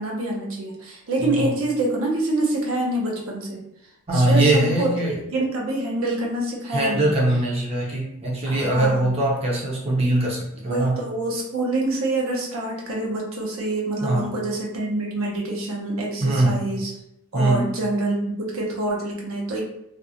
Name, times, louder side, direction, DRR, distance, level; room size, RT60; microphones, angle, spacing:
voice 1, 0.0-3.6 4.1-7.1 8.5-9.1 10.7-16.9 17.3-19.6, right 2 dB, 70° right, -1 dB, 0.6 m, -26 dB
voice 2, 1.2-1.5 4.1-5.2 6.7-11.0 14.0-14.3 16.2-16.6 17.3-17.7, right 1 dB, 30° right, -4 dB, 0.6 m, -21 dB
2.5 x 2.1 x 2.7 m, 0.80 s
head